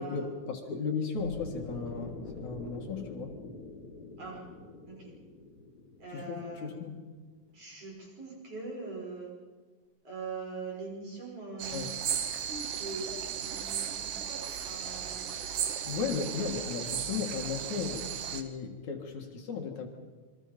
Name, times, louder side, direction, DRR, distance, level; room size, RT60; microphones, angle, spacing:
voice 1, 0.0-3.4 6.1-7.0 11.7-11.9 15.8-19.9, left 5 dB, 55° left, 3 dB, 2.6 m, -35 dB
sound 1, 1.2-7.3, left 3 dB, 20° left, 5.3 m, -46 dB
voice 2, 6.0-6.7 7.5-9.3 10.0-11.9 12.3-15.3, right 3 dB, 35° right, -2 dB, 6.6 m, -42 dB
sound 2, 11.6-18.4, right 9 dB, 65° right, 2.3 m, -35 dB
27.5 x 23.0 x 5.3 m, 1.4 s
omnidirectional pair, 4.9 m